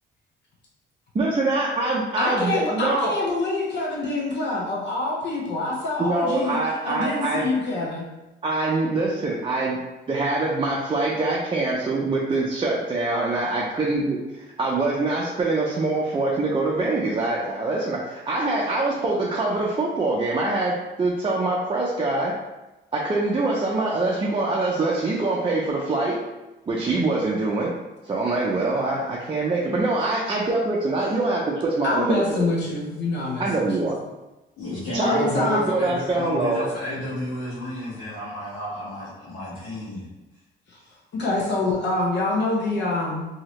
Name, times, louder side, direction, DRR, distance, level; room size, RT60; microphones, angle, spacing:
voice 1, 1.1-3.1 6.0-7.5 8.4-9.8 10.1-22.3 22.9-26.2 26.7-27.7 28.0-32.5 33.4-34.0 34.9-36.7, right 2 dB, 25° right, -4 dB, 0.5 m, -24 dB
voice 2, 2.2-6.6 6.8-8.0 31.8-33.7 35.0-35.7 40.7-40.8 41.1-43.3, left 2 dB, 60° left, -4 dB, 0.8 m, -25 dB
voice 3, 34.6-40.1, left 1 dB, 80° left, -10 dB, 1.1 m, -31 dB
3.0 x 2.7 x 2.9 m, 1.0 s
cardioid pair, 90°, 20 cm